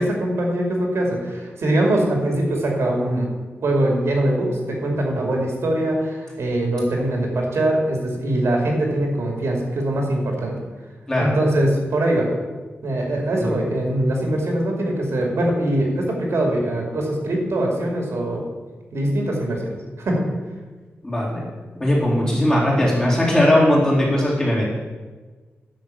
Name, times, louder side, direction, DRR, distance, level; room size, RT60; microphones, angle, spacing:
voice 1, 0.0-3.3 3.6-10.5 11.2-12.3 12.8-18.4 18.9-20.3, right 1 dB, 75° right, 0 dB, 2.6 m, -22 dB
voice 2, 21.0-21.4 21.8-24.6, left 1 dB, 15° left, -6 dB, 3.5 m, -19 dB
10.0 x 6.5 x 7.1 m, 1.3 s
wide cardioid pair, 140°, 5 cm